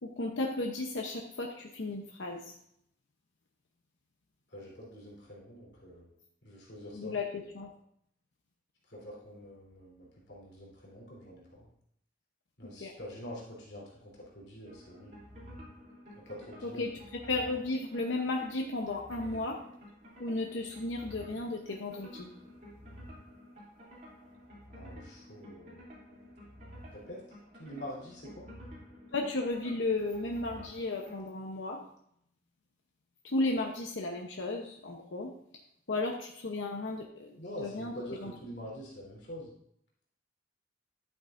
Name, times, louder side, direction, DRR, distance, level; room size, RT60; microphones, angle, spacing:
voice 1, 0.0-2.6 6.9-7.7 12.8-12.9 16.6-16.9 17.3-19.6 20.2-22.3 29.1-31.8 33.2-35.3 35.9-37.9 38.2-38.3, left 2 dB, 80° left, 1 dB, 0.9 m, -34 dB
voice 2, 4.5-6.1 6.4-7.2 8.9-11.7 12.6-15.3 16.1-16.9 24.7-25.9 26.9-27.2 27.5-28.5 37.4-39.5, equal, 60° left, -5 dB, 3.4 m, -46 dB
sound 1, 14.7-31.2, equal, 45° right, 3.0 m, -51 dB
11.0 x 9.1 x 2.6 m, 0.70 s
head